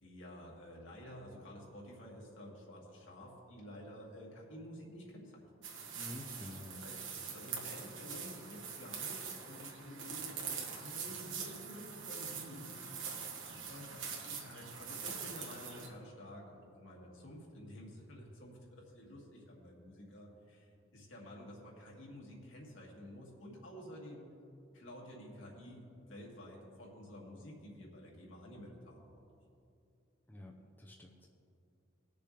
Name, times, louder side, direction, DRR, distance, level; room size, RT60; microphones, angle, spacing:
voice 1, 0.0-5.4 6.8-7.0 7.3-12.8 13.7-24.3 24.7-29.2, equal, 70° left, -2 dB, 2.2 m, -51 dB
sound 1, 5.6-15.9, right 6 dB, 65° right, 1.7 m, -44 dB
voice 2, 5.9-6.8 30.3-31.3, left 1 dB, 10° left, 0 dB, 0.7 m, -49 dB
19.5 x 6.9 x 3.3 m, 2.6 s
head